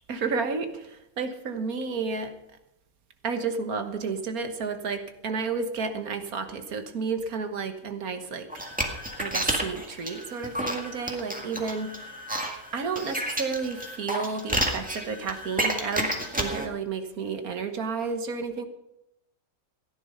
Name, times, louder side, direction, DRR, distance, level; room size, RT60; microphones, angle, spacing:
voice 1, 0.1-2.3 3.2-8.5 9.2-11.9 12.7-18.6, right 5 dB, 80° right, 7 dB, 1.8 m, -31 dB
sound 1, 8.5-16.7, right 1 dB, 5° right, 1.8 m, -31 dB
16.0 x 10.5 x 5.6 m, 0.86 s
omnidirectional pair, 1.5 m